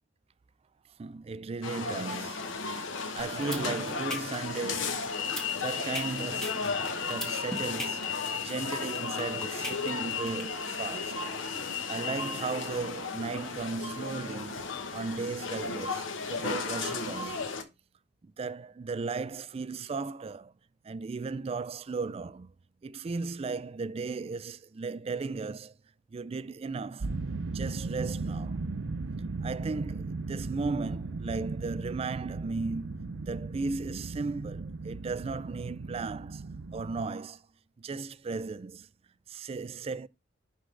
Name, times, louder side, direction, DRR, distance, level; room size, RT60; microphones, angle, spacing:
voice 1, 1.0-5.2 5.5-11.3 11.9-14.7 14.9-17.4 18.2-20.5 20.8-22.5 22.8-25.7 26.1-27.1 27.5-28.6 29.4-36.4 36.7-37.4 37.8-38.9 39.3-40.1, right 4 dB, 30° right, 0.3 m, -36 dB
sound 1, 1.6-17.6, left 5 dB, 80° left, 1.1 m, -34 dB
sound 2, 3.2-10.4, equal, 5° left, 1.9 m, -38 dB
sound 3, 27.0-37.1, right 3 dB, 85° right, 0.6 m, -36 dB
11.0 x 3.8 x 3.3 m
head